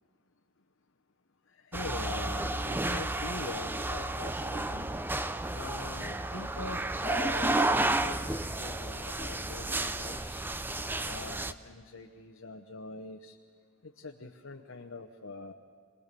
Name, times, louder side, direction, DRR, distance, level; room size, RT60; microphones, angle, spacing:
voice 1, 1.5-4.9 5.5-10.4 11.1-13.4 13.8-15.5, left 3 dB, 60° left, 2 dB, 1.0 m, -43 dB
sound 1, 1.7-11.5, right 2 dB, 10° right, 0.5 m, -32 dB
25.5 x 19.5 x 6.9 m, 2.2 s
head